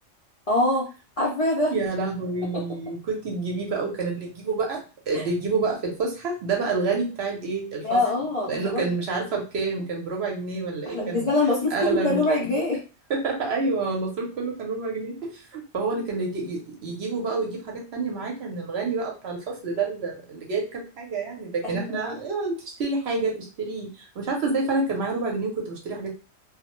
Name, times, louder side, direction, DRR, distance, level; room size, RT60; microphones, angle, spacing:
voice 1, 0.5-0.9 1.2-1.7 2.5-2.6 5.1-5.2 7.8-8.9 10.9-12.8 21.6-22.2, left 2 dB, 50° left, -4 dB, 0.4 m, -24 dB
voice 2, 1.7-4.8 5.1-8.0 8.5-11.3 11.7-12.6 13.1-26.2, right 3 dB, 60° right, 0 dB, 0.8 m, -28 dB
2.2 x 2.0 x 2.9 m, 0.33 s
omnidirectional pair, 1.4 m